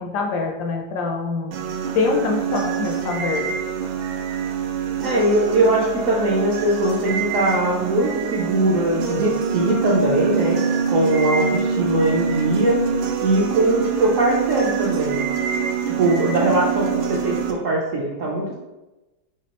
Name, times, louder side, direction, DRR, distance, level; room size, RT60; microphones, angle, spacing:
voice 1, 0.0-1.6 1.9-3.5, left 4 dB, 70° left, 2 dB, 1.1 m, -24 dB
sound 1, 1.5-17.5, right 6 dB, 90° right, 1.4 m, -25 dB
voice 2, 5.0-10.6 10.9-12.8 13.2-15.2 15.9-18.5, right 1 dB, 65° right, -4 dB, 0.8 m, -21 dB
5.2 x 3.6 x 2.9 m, 1.1 s
omnidirectional pair, 2.0 m